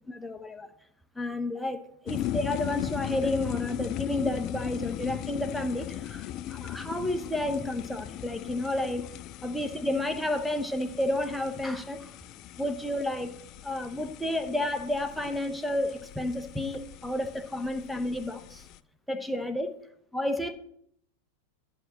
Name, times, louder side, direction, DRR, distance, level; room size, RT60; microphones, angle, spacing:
voice 1, 0.1-0.7 1.1-9.0 9.4-12.2 12.6-13.3 13.6-18.7 19.1-19.7 20.1-20.5, left 1 dB, 5° left, 7 dB, 0.9 m, -31 dB
sound 1, 2.1-18.8, left 12 dB, 40° left, 0.3 m, -38 dB
11.0 x 4.2 x 7.4 m, 0.71 s
figure-of-eight pair, 90°, 0 cm